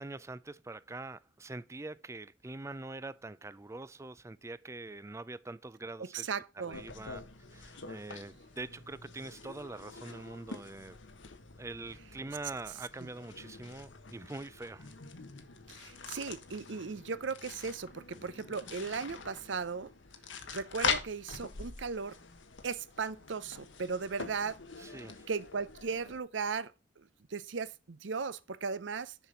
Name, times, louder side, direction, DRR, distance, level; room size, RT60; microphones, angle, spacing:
voice 1, 0.0-6.3 6.6-7.2 7.5-11.0 11.6-14.9 24.8-25.3, right 2 dB, 15° right, 0.4 m, -44 dB
voice 2, 6.0-6.8 13.0-13.1 15.7-19.9 20.5-22.2 22.6-24.6 25.3-29.2, right 5 dB, 75° right, 0.7 m, -37 dB
sound 1, 6.7-26.2, left 5 dB, 80° left, 1.2 m, -43 dB
7.0 x 6.0 x 5.1 m
head